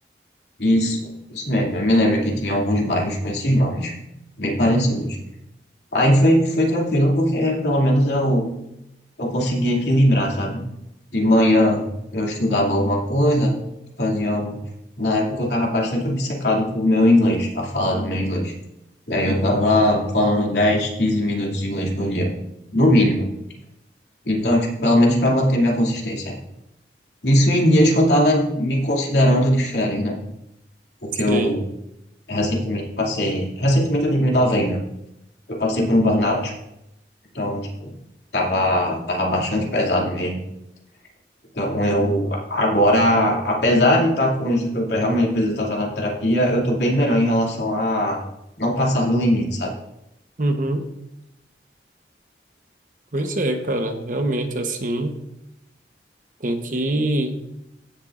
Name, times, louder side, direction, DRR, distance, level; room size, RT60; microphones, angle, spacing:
voice 1, 0.6-3.9 4.4-5.2 5.9-8.5 9.2-10.6 11.1-11.8 12.1-13.5 14.0-14.6 15.0-18.5 19.1-22.3 22.7-23.3 24.2-26.4 27.2-30.2 31.0-31.6 32.3-34.8 35.5-36.5 37.3-37.9 38.3-40.3 41.5-48.2 48.6-49.7, left 1 dB, 70° left, -2 dB, 2.6 m, -20 dB
voice 2, 50.4-50.9 53.1-55.2 56.4-57.4, right 1 dB, 45° right, 6 dB, 1.0 m, -24 dB
15.5 x 7.3 x 2.5 m, 0.84 s
head